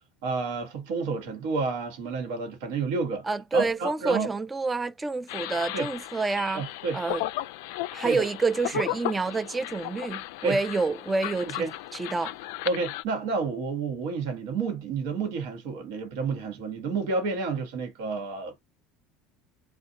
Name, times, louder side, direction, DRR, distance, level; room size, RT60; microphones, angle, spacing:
voice 1, 0.2-3.3 3.5-4.3 5.7-5.9 6.5-7.0 8.0-8.2 10.4-10.6 11.4-11.7 12.6-18.6, right 4 dB, 75° right, 1.0 m, -30 dB
voice 2, 3.2-6.6 6.9-7.2 7.9-11.7 11.9-12.3, right 3 dB, 20° right, 0.5 m, -28 dB
sound 1, 5.3-13.0, left 16 dB, 75° left, 0.3 m, -35 dB
2.6 x 2.0 x 2.5 m
supercardioid pair, 95°, 0 cm